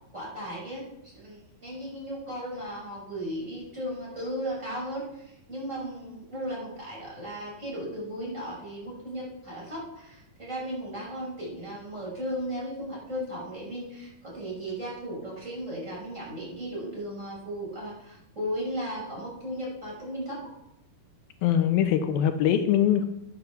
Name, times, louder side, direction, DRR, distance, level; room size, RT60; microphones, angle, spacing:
voice 1, 0.1-20.4, equal, 20° right, -4 dB, 6.2 m, -36 dB
voice 2, 21.4-23.0, left 10 dB, 85° left, 8 dB, 2.7 m, -22 dB
11.0 x 8.3 x 7.1 m, 0.83 s
omnidirectional pair, 4.2 m